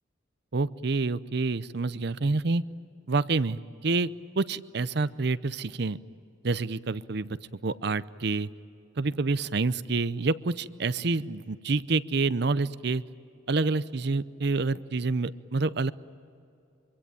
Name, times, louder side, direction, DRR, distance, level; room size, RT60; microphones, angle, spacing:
voice 1, 0.5-2.6 3.1-6.0 6.4-7.4 7.6-8.5 9.0-13.0 13.5-15.9, right 3 dB, 55° right, 16 dB, 0.7 m, -28 dB
25.0 x 24.5 x 9.1 m, 2.5 s
head